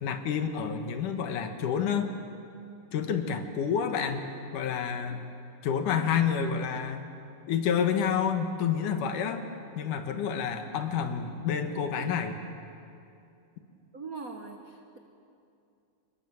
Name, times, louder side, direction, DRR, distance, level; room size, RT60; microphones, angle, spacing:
voice 1, 0.0-2.1 2.9-5.2 5.6-7.0 7.5-9.4 9.7-12.4, left 7 dB, 75° left, 6 dB, 2.9 m, -29 dB
voice 2, 13.9-15.0, right 4 dB, 60° right, 3 dB, 0.9 m, -41 dB
26.0 x 21.0 x 7.6 m, 2.6 s
omnidirectional pair, 3.7 m